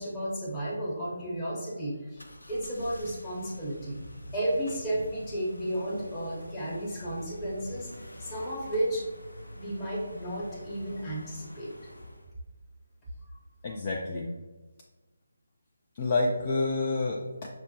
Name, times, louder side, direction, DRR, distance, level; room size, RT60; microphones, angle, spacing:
voice 1, 0.0-2.2 2.5-4.0 4.3-7.9 8.2-9.0 9.5-11.7 13.2-13.3, right 1 dB, 15° left, -7 dB, 1.0 m, -33 dB
sound 1, 2.2-12.3, left 1 dB, 85° left, 0.6 m, -47 dB
voice 2, 13.6-14.3 16.0-17.5, left 2 dB, 35° left, -1 dB, 0.4 m, -28 dB
6.0 x 2.1 x 2.8 m, 1.2 s
figure-of-eight pair, 155°, 0 cm